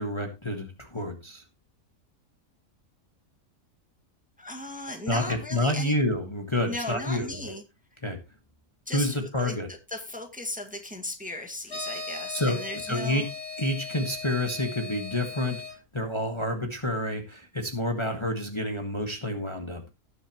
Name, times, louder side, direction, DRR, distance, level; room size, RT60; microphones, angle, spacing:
voice 1, 0.0-1.4 5.1-7.5 8.0-8.2 8.9-9.7 12.3-13.2 13.6-15.6 15.9-19.9, left 1 dB, 20° left, 4 dB, 1.6 m, -29 dB
voice 2, 4.4-6.0 6.7-7.6 8.9-13.3, left 2 dB, 5° right, 4 dB, 1.8 m, -36 dB
sound 1, 11.7-15.7, left 4 dB, 40° left, 3.4 m, -38 dB
19.0 x 7.1 x 3.0 m, 0.25 s
omnidirectional pair, 1.5 m